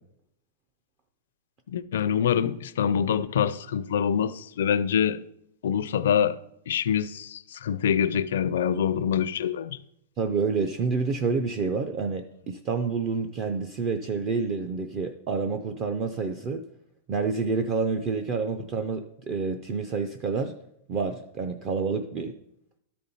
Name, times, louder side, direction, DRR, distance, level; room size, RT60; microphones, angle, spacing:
voice 1, 1.7-5.2 5.6-6.4 6.7-9.8, left 8 dB, 75° left, 0.5 m, -25 dB
voice 2, 10.2-16.6 17.1-20.5 20.9-22.3, right 4 dB, 25° right, 0.4 m, -28 dB
12.5 x 4.3 x 5.3 m
supercardioid pair, 170°, 0 cm